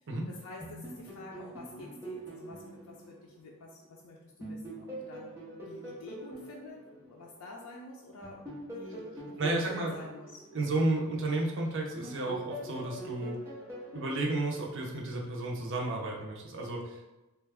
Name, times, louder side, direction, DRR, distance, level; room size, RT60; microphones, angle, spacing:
voice 1, 0.3-5.3 5.6-10.4, left 2 dB, 75° left, -2 dB, 0.4 m, -49 dB
sound 1, 0.6-3.9 4.4-7.7 8.2-11.5 12.0-15.3, right 1 dB, 10° right, 0.9 m, -44 dB
voice 2, 9.4-9.9 10.5-13.4 13.9-17.1, right 2 dB, 60° right, -1 dB, 0.6 m, -32 dB
3.2 x 2.3 x 3.4 m, 1.0 s
head